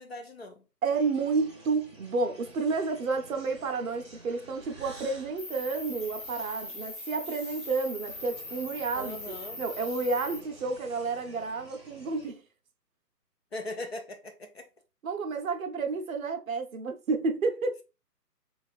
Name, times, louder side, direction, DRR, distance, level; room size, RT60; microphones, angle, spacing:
voice 1, 0.0-0.6 9.0-9.6 13.5-14.7, left 1 dB, 40° left, 0.5 m, -39 dB
voice 2, 0.8-12.4 15.0-17.8, right 4 dB, 55° right, 0.6 m, -30 dB
sound 1, 0.9-12.3, right 2 dB, 20° right, 0.6 m, -51 dB
Cricket, 5.4-10.4, left 2 dB, 10° left, 1.3 m, -41 dB
4.0 x 2.3 x 2.3 m
figure-of-eight pair, 145°, 49 cm